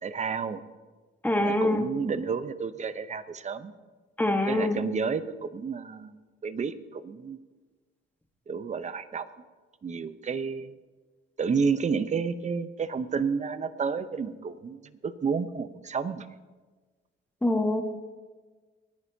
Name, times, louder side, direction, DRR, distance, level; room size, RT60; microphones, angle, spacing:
voice 1, 0.0-0.6 1.4-3.7 4.5-6.1 6.4-7.4 8.5-9.3 9.8-10.8 11.4-16.3, right 5 dB, 35° right, 12 dB, 0.8 m, -31 dB
voice 2, 1.2-1.9 4.2-4.8 17.4-17.8, left 1 dB, 10° left, 4 dB, 1.4 m, -24 dB
28.0 x 9.8 x 2.8 m, 1.3 s
cardioid pair, 90°, 20 cm